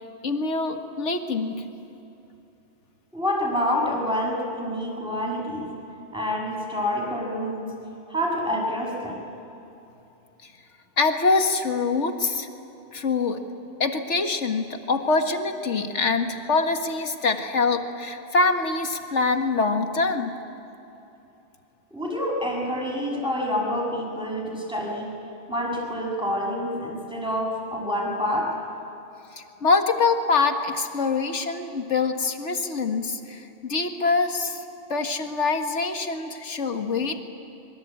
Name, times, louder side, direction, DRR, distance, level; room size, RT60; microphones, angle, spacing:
voice 1, 0.2-1.6 11.0-12.5 12.9-13.4 13.8-20.3 29.4-34.6 34.9-37.2, left 4 dB, 75° left, 5 dB, 2.0 m, -24 dB
voice 2, 3.1-5.7 6.1-7.7 8.1-9.3 21.9-25.1 25.5-28.5, left 1 dB, 5° right, -3 dB, 6.8 m, -27 dB
25.0 x 23.5 x 8.6 m, 2.9 s
omnidirectional pair, 1.2 m